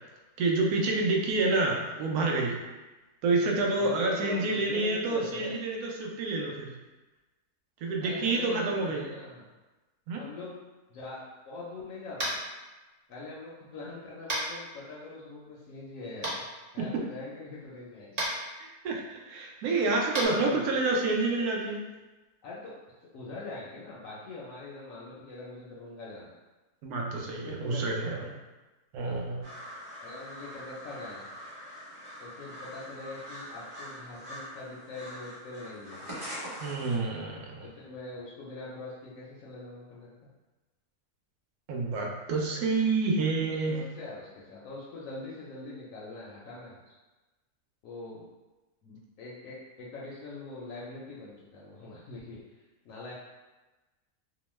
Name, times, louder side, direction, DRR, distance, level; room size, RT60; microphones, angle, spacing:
voice 1, 0.4-2.5 3.2-6.7 7.8-9.0 10.1-10.2 18.6-21.8 26.8-28.2 28.9-29.4 36.6-37.7 41.7-43.8, right 3 dB, 80° right, 0 dB, 1.1 m, -28 dB
voice 2, 3.8-5.5 8.0-9.4 10.2-10.6 10.9-12.3 13.1-16.4 16.7-18.2 20.3-20.8 22.4-22.7 23.1-26.3 27.3-28.3 30.0-31.3 32.2-36.1 37.6-40.1 42.5-42.6 43.4-46.8 47.8-48.3 48.8-53.1, left 3 dB, 70° left, -5 dB, 0.9 m, -43 dB
Tap, 12.2-12.4 14.3-14.4 16.2-16.3 18.1-18.3 20.1-20.3, right 1 dB, 45° right, 0.5 m, -30 dB
sound 1, 29.4-37.0, equal, 25° right, 0.8 m, -43 dB
2.9 x 2.1 x 3.0 m, 1.2 s
omnidirectional pair, 1.6 m